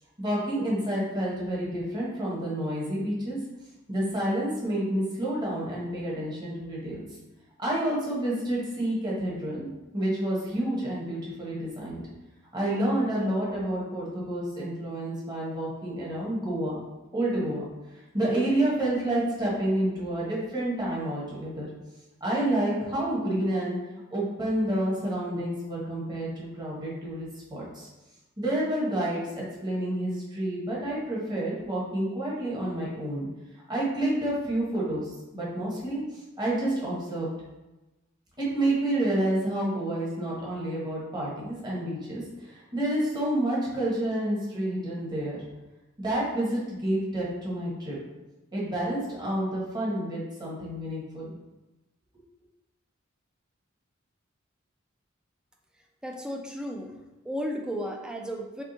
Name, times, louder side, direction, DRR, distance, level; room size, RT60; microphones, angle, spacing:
voice 1, 0.2-3.4 3.9-7.0 7.6-9.7 9.9-12.0 12.5-16.8 17.1-17.7 18.1-21.7 22.2-23.8 24.1-27.9 28.4-33.3 33.7-36.0 36.4-37.3 38.4-45.4 46.0-48.0 48.5-51.3, right 1 dB, 20° right, -5 dB, 1.2 m, -29 dB
voice 2, 56.0-57.0 57.2-58.6, equal, 5° right, 1 dB, 0.4 m, -34 dB
3.6 x 3.2 x 4.0 m, 1.1 s
head